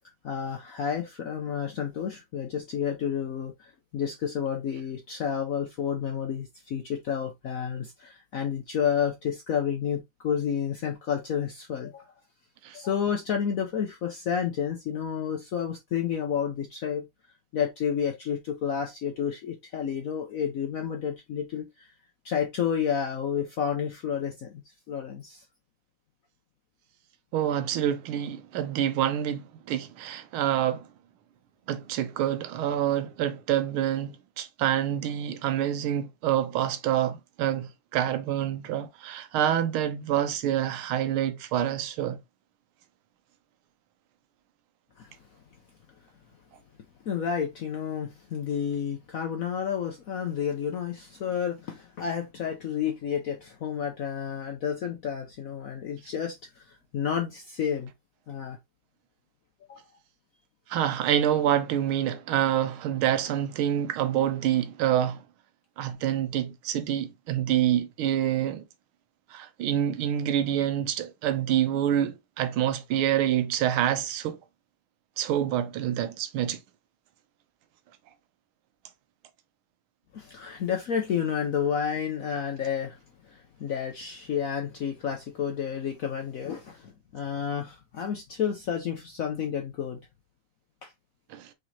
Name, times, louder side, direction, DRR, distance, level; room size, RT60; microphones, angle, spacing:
voice 1, 0.2-12.1 12.7-17.1 17.5-21.9 22.2-25.4 45.0-45.1 47.1-56.6 56.9-57.9 58.3-58.6 59.7-59.8 80.1-82.9 83.3-90.0, left 8 dB, 80° left, 0.7 m, -30 dB
voice 2, 27.3-30.9 31.7-42.2 60.7-65.2 65.8-68.6 69.3-74.4 75.2-76.6 91.3-91.5, right 11 dB, 80° right, 1.6 m, -27 dB
5.0 x 3.8 x 2.7 m
omnidirectional pair, 2.4 m